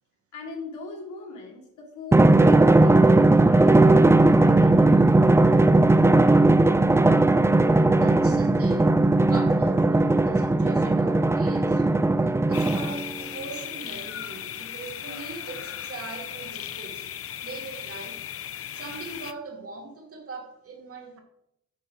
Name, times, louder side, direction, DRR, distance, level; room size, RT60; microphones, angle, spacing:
voice 1, 0.3-4.9, left 3 dB, 80° left, -1 dB, 3.0 m, -41 dB
Drum, 2.1-13.1, right 2 dB, 10° right, 0.5 m, -18 dB
voice 2, 8.0-11.9 12.5-17.1 17.4-18.2 18.7-21.2, right 4 dB, 50° right, 3 dB, 2.3 m, -41 dB
sound 1, 12.5-19.3, left 10 dB, 50° left, 0.6 m, -37 dB
8.7 x 5.4 x 5.0 m, 0.78 s
cardioid pair, 90°, 30 cm